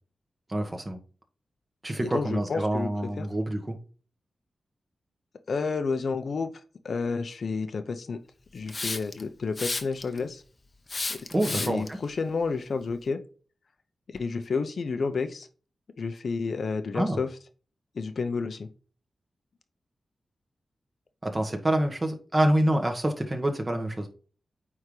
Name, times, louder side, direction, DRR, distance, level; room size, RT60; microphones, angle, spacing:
voice 1, 0.5-1.0 1.8-3.7 11.3-12.0 16.9-17.2 21.2-24.1, right 1 dB, 25° right, 1.3 m, -27 dB
voice 2, 2.0-2.9 3.2-3.3 5.5-6.5 6.8-8.2 8.5-10.4 11.1-11.2 11.5-13.2 14.1-15.5 16.0-17.3 17.9-18.7, left 4 dB, 60° left, 0.7 m, -30 dB
Hiss, 8.7-9.2 9.6-10.2 10.9-11.9, left 3 dB, 30° left, 0.8 m, -31 dB
9.1 x 3.6 x 3.2 m
wide cardioid pair, 110°, 0 cm